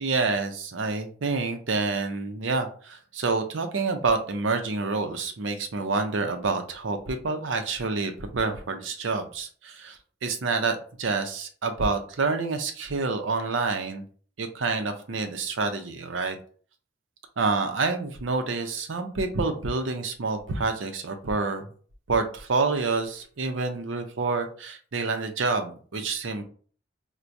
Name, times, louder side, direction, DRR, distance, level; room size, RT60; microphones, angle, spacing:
voice 1, 0.0-14.0 14.4-16.4 17.4-21.7 22.1-26.4, right 4 dB, 85° right, 6 dB, 0.6 m, -28 dB
4.4 x 2.2 x 2.6 m, 0.44 s
head